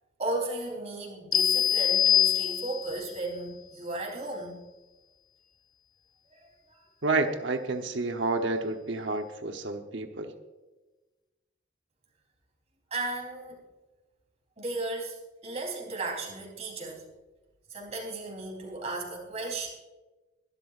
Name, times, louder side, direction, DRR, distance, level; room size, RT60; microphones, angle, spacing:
voice 1, 0.2-4.6 6.3-6.8 12.9-13.6 14.6-17.0 17.7-19.7, right 2 dB, 35° right, -1 dB, 3.8 m, -35 dB
sound 1, 1.3-3.0, left 10 dB, 20° left, 0.4 m, -24 dB
voice 2, 7.0-10.3, right 3 dB, 80° right, 5 dB, 1.0 m, -29 dB
23.0 x 12.0 x 2.5 m, 1.2 s
head